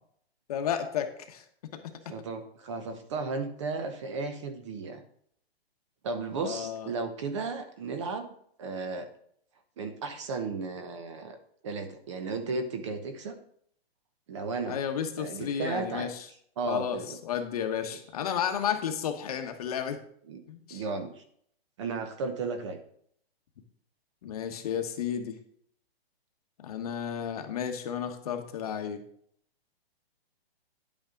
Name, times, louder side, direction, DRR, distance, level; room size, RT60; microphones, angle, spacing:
voice 1, 0.5-1.4 1.7-1.8 6.4-6.9 14.7-16.2 16.7-20.0 20.5-20.8 24.2-25.4 26.6-29.0, left 8 dB, 35° left, 6 dB, 1.2 m, -32 dB
voice 2, 2.1-5.0 6.0-8.3 8.6-9.1 9.8-11.4 11.6-13.4 14.3-14.8 15.2-16.1 16.6-17.2 17.9-18.0 20.3-20.4 20.7-21.2 21.8-22.8, right 4 dB, 30° right, 8 dB, 0.9 m, -34 dB
10.5 x 8.4 x 3.8 m, 0.65 s
hypercardioid pair, 170°, 31 cm